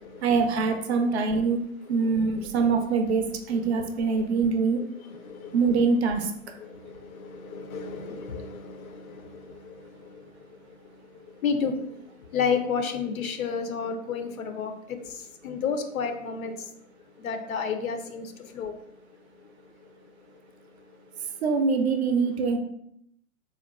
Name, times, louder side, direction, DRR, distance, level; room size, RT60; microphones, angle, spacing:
voice 1, 0.2-1.6 1.9-4.8 5.5-6.3 21.4-22.6, right 4 dB, 50° right, 6 dB, 0.5 m, -24 dB
voice 2, 5.2-5.6 6.6-11.0 11.3-12.0 12.2-16.7 17.2-18.7, left 6 dB, 75° left, 6 dB, 0.6 m, -32 dB
3.5 x 2.2 x 2.3 m, 0.76 s
figure-of-eight pair, 115°, 42 cm